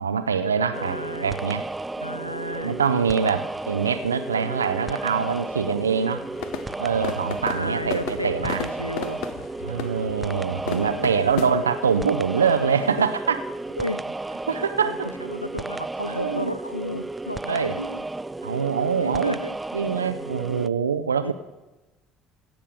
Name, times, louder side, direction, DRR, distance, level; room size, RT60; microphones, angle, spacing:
voice 1, 0.0-1.7 2.6-6.2 6.8-8.6 9.6-13.4 14.5-15.1 16.1-16.5 17.5-17.8 18.4-19.4 19.7-21.3, right 6 dB, 80° right, 10 dB, 0.4 m, -24 dB
voice 2, 0.7-1.4 2.0-2.8 7.5-9.2 10.7-11.2 13.8-14.0 14.8-18.1 19.0-19.6 20.5-20.6 21.2-21.3, equal, 90° left, 14 dB, 0.4 m, -33 dB
sound 1, 0.7-20.7, right 2 dB, 10° right, 0.3 m, -33 dB
sound 2, 6.3-11.5, left 8 dB, 60° left, 0.8 m, -34 dB
16.5 x 6.9 x 4.8 m, 1.1 s
figure-of-eight pair, 60°, 0 cm